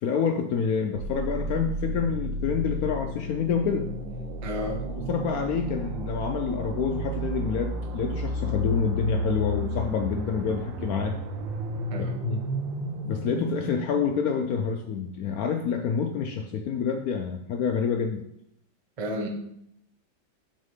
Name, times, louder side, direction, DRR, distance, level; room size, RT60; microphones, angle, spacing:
voice 1, 0.0-3.9 5.1-11.2 12.0-12.4 13.1-18.2, left 6 dB, 75° left, 5 dB, 0.8 m, -28 dB
sound 1, 0.9-14.7, equal, 90° right, 1.5 m, -32 dB
voice 2, 4.4-4.8 11.9-12.2 19.0-19.3, equal, 30° right, 1 dB, 0.6 m, -31 dB
6.4 x 4.1 x 5.5 m, 0.78 s
omnidirectional pair, 2.0 m